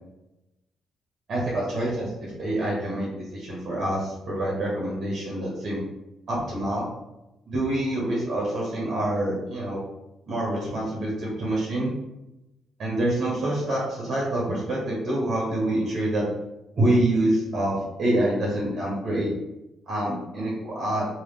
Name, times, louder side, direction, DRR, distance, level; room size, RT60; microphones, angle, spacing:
voice 1, 1.3-5.8 6.3-6.9 7.5-9.8 10.3-11.9 12.8-16.3 16.8-19.3 19.9-21.1, right 1 dB, 60° right, -5 dB, 1.4 m, -26 dB
3.3 x 3.2 x 3.4 m, 0.93 s
hypercardioid pair, 50°, 0 cm